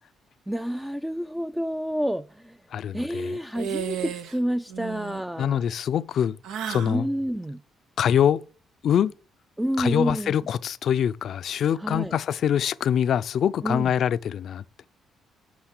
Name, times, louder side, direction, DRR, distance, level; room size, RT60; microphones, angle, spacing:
voice 1, 0.5-2.6 2.9-5.6 6.9-7.6 9.6-10.5 11.8-12.2 13.6-13.9, equal, 5° right, 0.4 m, -29 dB
voice 2, 2.7-3.4 5.4-6.4 6.7-7.1 8.0-8.4 8.8-9.1 9.8-14.6, left 9 dB, 65° left, 0.4 m, -24 dB
sound 1, 3.5-4.4 4.7-5.2 6.4-7.0, right 8 dB, 90° right, 0.7 m, -33 dB
9.3 x 3.7 x 6.5 m
cardioid pair, 90°, 0 cm